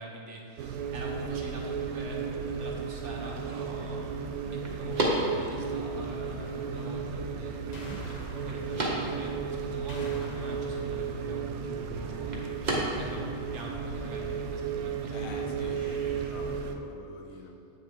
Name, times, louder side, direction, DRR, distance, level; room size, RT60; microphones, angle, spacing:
voice 1, 0.0-4.2 4.5-8.0 8.3-12.4 12.9-16.3, right 1 dB, 55° right, 1.2 m, -43 dB
sound 1, 0.6-16.8, right 6 dB, 90° right, 1.1 m, -34 dB
sound 2, 1.1-16.4, right 1 dB, 35° right, 1.0 m, -38 dB
sound 3, 6.6-7.3 7.7-9.1 9.9-11.3, left 1 dB, 35° left, 0.8 m, -46 dB
voice 2, 15.1-15.9 16.2-17.7, left 4 dB, 75° left, 1.1 m, -46 dB
8.1 x 6.4 x 3.6 m
omnidirectional pair, 1.5 m